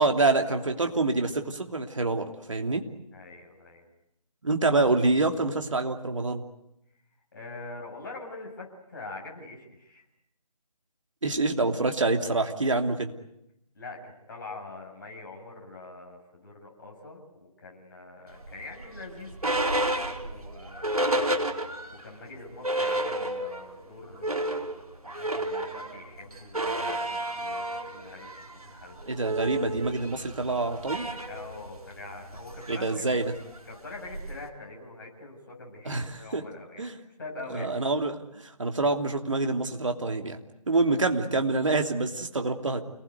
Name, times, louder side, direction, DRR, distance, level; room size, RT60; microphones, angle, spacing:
voice 1, 0.0-2.8 4.4-6.4 11.2-13.1 29.1-31.1 32.7-33.3 35.8-36.4 36.8-36.9 37.5-40.4 40.7-42.8, right 3 dB, 55° right, 4 dB, 3.0 m, -26 dB
voice 2, 3.1-3.9 7.3-10.0 13.7-21.0 21.9-29.2 31.3-33.1 33.7-36.8 37.2-37.7, left 3 dB, 35° left, 0 dB, 7.7 m, -44 dB
sound 1, 18.4-22.0 22.4-22.5 22.6-23.7 24.0-34.5, right 1 dB, 70° right, 4.1 m, -31 dB
29.0 x 20.0 x 9.5 m, 0.83 s
figure-of-eight pair, 155°, 20 cm